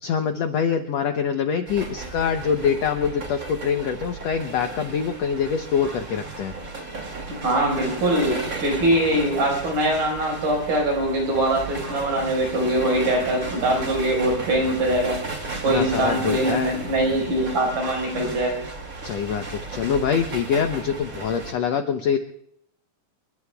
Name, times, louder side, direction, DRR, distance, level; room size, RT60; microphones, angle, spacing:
voice 1, 0.0-6.5 15.7-16.7 19.0-22.2, left 7 dB, 75° left, 6 dB, 1.5 m, -24 dB
sound 1, 1.7-21.5, right 3 dB, 30° right, 2.3 m, -34 dB
voice 2, 7.4-15.2 15.6-18.6, right 1 dB, 70° right, 0 dB, 6.7 m, -22 dB
29.0 x 21.5 x 2.3 m, 0.72 s
omnidirectional pair, 4.0 m